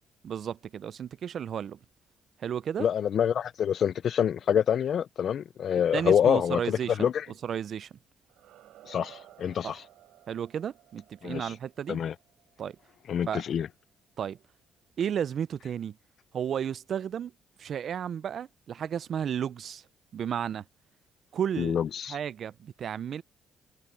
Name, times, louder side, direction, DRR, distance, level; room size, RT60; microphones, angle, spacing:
voice 1, 0.2-1.8 2.4-2.9 5.9-7.1 7.4-7.9 9.6-9.8 10.3-12.0 12.6-12.8 13.3-13.4 14.2-14.4 15.0-16.0 16.3-17.3 17.6-19.8 20.1-20.6 21.3-21.8 22.0-23.2, right 8 dB, 60° right, 0.4 m, -33 dB
voice 2, 2.8-7.2 8.9-9.8 11.2-11.5 11.9-12.1 13.1-13.7 21.6-22.2, left 8 dB, 60° left, 0.5 m, -26 dB
sound 1, 8.2-13.2, right 14 dB, 90° right, 3.6 m, -55 dB
cardioid pair, 90°, 0 cm